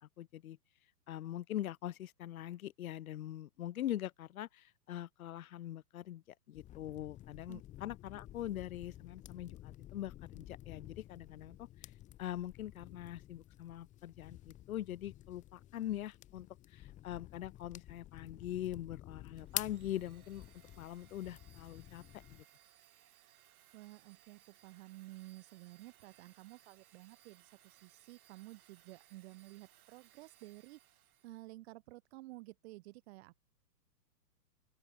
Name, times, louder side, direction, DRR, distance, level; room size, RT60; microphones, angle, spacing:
voice 1, 0.0-0.6 1.1-11.9 12.2-20.5 20.8-22.0 22.3-22.4, left 12 dB, 55° left, 2.1 m, -43 dB
sound 1, 6.5-22.4, left 13 dB, 15° left, 0.9 m, -50 dB
Domestic sounds home sounds, 19.4-31.5, right 11 dB, 60° right, 6.8 m, -65 dB
voice 2, 23.7-30.8 31.2-33.4, right 20 dB, 40° right, 1.5 m, -53 dB
open air
hypercardioid pair, 125°, 49 cm